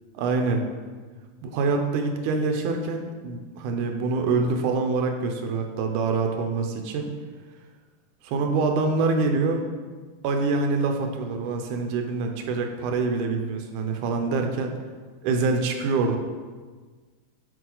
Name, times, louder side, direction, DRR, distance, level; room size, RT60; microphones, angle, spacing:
voice 1, 0.2-0.6 1.4-7.1 8.2-9.7 10.2-14.7 15.2-16.2, right 4 dB, 90° right, 4 dB, 2.3 m, -25 dB
7.8 x 6.5 x 3.8 m, 1.4 s
omnidirectional pair, 3.5 m